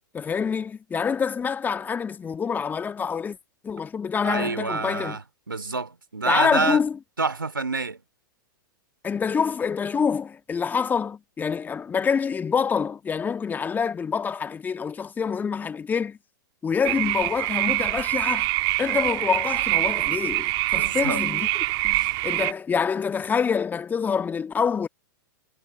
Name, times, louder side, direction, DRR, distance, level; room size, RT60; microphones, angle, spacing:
voice 1, 0.1-3.4 3.6-5.2 6.2-6.9 9.0-16.2 16.6-18.5 18.8-21.5 21.8-24.9, left 6 dB, 15° left, 1.7 m, -26 dB
voice 2, 4.2-6.8 7.2-8.0 20.7-21.2 21.9-22.1, right 3 dB, 85° right, 2.7 m, -28 dB
sound 1, 16.8-22.5, right 23 dB, 40° right, 2.0 m, -25 dB
figure-of-eight pair, 100°, 11 cm